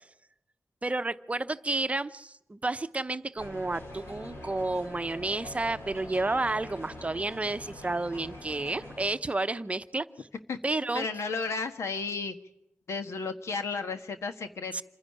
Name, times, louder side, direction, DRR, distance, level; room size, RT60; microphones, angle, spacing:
voice 1, 0.8-10.3 10.6-11.1 14.7-14.8, right 2 dB, 30° right, 12 dB, 0.8 m, -31 dB
sound 1, 3.4-9.1, left 1 dB, 65° left, 4.9 m, -44 dB
voice 2, 10.9-12.3 12.9-14.8, left 4 dB, 80° left, 8 dB, 1.5 m, -33 dB
27.5 x 10.5 x 9.9 m, 0.82 s
cardioid pair, 70°, 5 cm